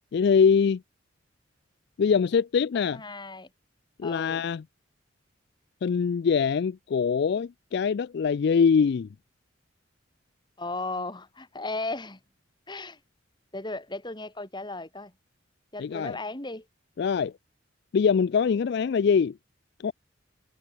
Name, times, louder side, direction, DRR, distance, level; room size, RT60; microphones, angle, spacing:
voice 1, 0.1-0.8 2.0-3.0 4.0-4.6 5.8-9.1 15.8-16.2 17.0-17.3 17.9-19.4 19.8-19.9, left 6 dB, 55° left, 0.3 m, -23 dB
voice 2, 2.9-3.5 4.0-4.4 10.6-12.2 12.7-13.0 13.5-15.1 15.7-16.6, left 2 dB, 25° left, 2.8 m, -35 dB
head